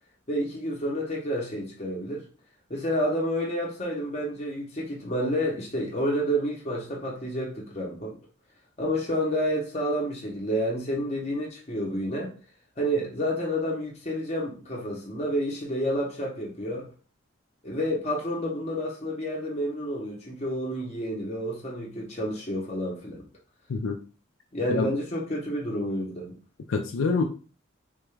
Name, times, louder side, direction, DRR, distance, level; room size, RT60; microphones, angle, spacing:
voice 1, 0.3-2.2 2.7-8.2 8.8-12.3 12.8-16.9 17.6-23.3 24.5-26.3, equal, 30° left, 0.7 m, -29 dB
voice 2, 23.7-24.0 24.7-24.9 26.7-27.2, left 4 dB, 80° left, 0.4 m, -26 dB
3.7 x 2.3 x 3.1 m
head